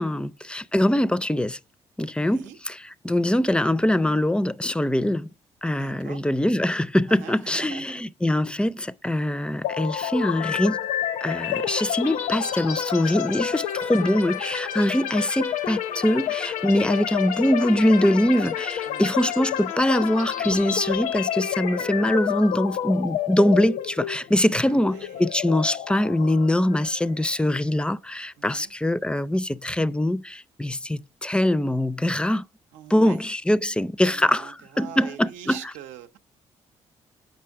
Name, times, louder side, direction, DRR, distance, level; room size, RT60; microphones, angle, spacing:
voice 1, 0.0-1.6 2.0-2.8 3.0-5.3 5.6-10.8 11.2-32.4 32.9-34.5 34.8-35.6, left 1 dB, 10° left, 0.4 m, -23 dB
voice 2, 2.2-2.6 5.7-6.2 7.1-8.0 18.9-19.2 24.5-25.3 28.4-28.7 32.7-33.2 34.0-36.2, right 9 dB, 90° right, 0.7 m, -43 dB
sound 1, 9.6-27.4, left 10 dB, 90° left, 0.6 m, -29 dB
7.5 x 5.3 x 4.6 m
supercardioid pair, 70°, 12 cm